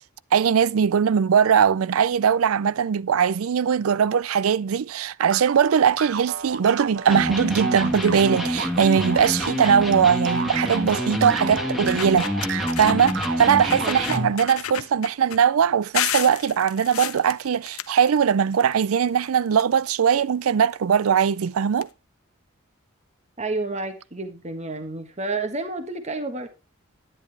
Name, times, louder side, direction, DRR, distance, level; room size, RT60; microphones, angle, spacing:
voice 1, 0.3-21.9, right 7 dB, 80° right, 0.4 m, -20 dB
sound 1, 5.3-14.6, right 6 dB, 60° right, 0.9 m, -33 dB
Electric guitar, 7.1-14.4, left 1 dB, ahead, 1.9 m, -27 dB
sound 2, 7.9-8.3 8.8-8.9 9.2-9.4 10.6-10.7 11.4-11.5 11.8-13.3 13.7-15.4 15.9-18.7 19.0-20.1 21.0-21.1 21.4-21.5 21.8-21.9, left 11 dB, 85° left, 0.7 m, -32 dB
voice 2, 23.4-26.5, right 3 dB, 30° right, 1.5 m, -30 dB
10.5 x 10.0 x 3.4 m
head